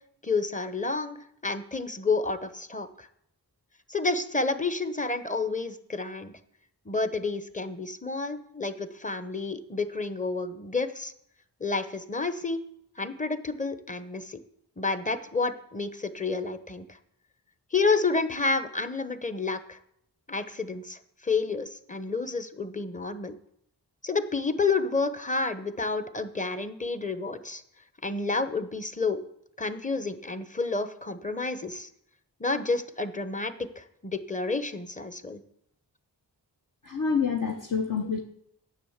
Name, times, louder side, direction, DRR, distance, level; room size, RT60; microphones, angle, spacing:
voice 1, 0.2-1.2 1.4-3.1 3.9-6.3 6.9-11.1 11.6-12.6 13.0-14.4 14.8-16.9 17.7-19.8 20.3-23.3 24.0-27.6 28.0-29.2 29.6-31.9 32.4-35.4, left 3 dB, 20° left, 11 dB, 1.0 m, -30 dB
voice 2, 36.8-38.2, left 5 dB, 50° left, 3 dB, 1.1 m, -27 dB
9.9 x 7.3 x 7.3 m, 0.73 s
wide cardioid pair, 60°, 40 cm